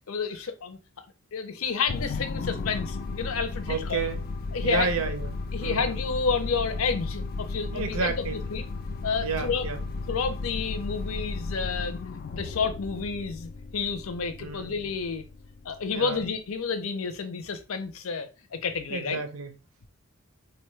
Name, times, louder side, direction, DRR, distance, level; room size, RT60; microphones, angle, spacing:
voice 1, 0.1-0.8 1.3-4.0 4.5-4.9 5.5-8.6 9.0-9.7 10.1-15.2 15.6-19.2, left 5 dB, 85° left, 0.6 m, -30 dB
sound 1, 1.9-16.4, left 3 dB, 45° left, 0.3 m, -35 dB
voice 2, 3.7-4.2 4.6-5.3 5.6-6.0 7.7-8.4 9.2-9.8 14.4-14.7 15.9-16.2 18.9-19.5, right 4 dB, 90° right, 0.6 m, -31 dB
4.0 x 2.2 x 3.1 m
head